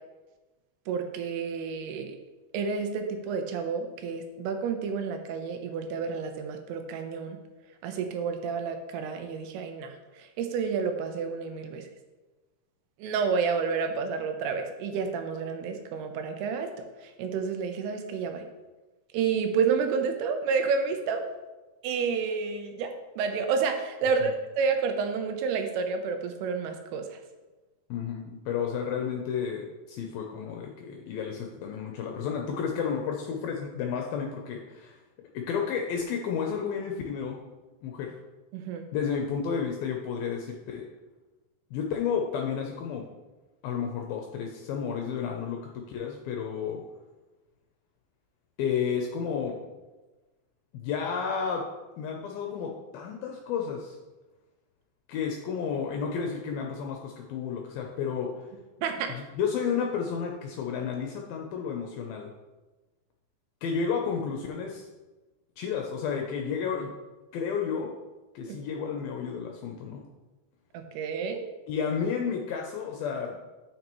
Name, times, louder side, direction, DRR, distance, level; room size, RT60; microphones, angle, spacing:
voice 1, 0.9-2.2 2.5-7.4 7.8-11.9 13.0-16.7 17.0-18.4 19.1-21.2 21.8-27.2 38.5-38.8 58.8-59.1 68.5-68.6 70.7-71.4, right 5 dB, 85° right, 6 dB, 2.8 m, -30 dB
voice 2, 27.9-35.0 35.3-37.4 37.8-38.1 38.9-40.8 41.7-43.1 43.6-46.8 48.6-49.6 50.7-51.7 52.0-54.0 55.1-58.5 59.1-62.3 63.6-64.9 65.6-66.9 67.3-67.9 68.4-70.1 71.7-73.4, left 6 dB, 80° left, 1 dB, 2.3 m, -31 dB
9.1 x 6.5 x 3.0 m, 1.2 s
omnidirectional pair, 4.5 m